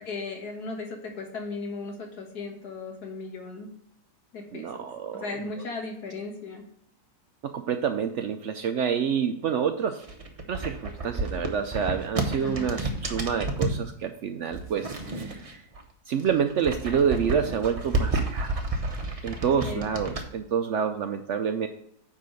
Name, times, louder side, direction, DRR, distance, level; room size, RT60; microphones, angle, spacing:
voice 1, 0.0-3.7 4.3-6.6 12.4-12.8 19.4-19.9, left 3 dB, 80° left, 2 dB, 2.1 m, -37 dB
voice 2, 4.5-5.3 7.4-10.0 10.5-15.6 16.1-18.6 19.2-21.7, right 7 dB, 65° right, 8 dB, 0.7 m, -28 dB
sound 1, 9.9-13.8 14.5-15.8 16.1-20.2, right 2 dB, 30° right, 0.7 m, -30 dB
9.6 x 3.8 x 6.3 m, 0.72 s
omnidirectional pair, 1.7 m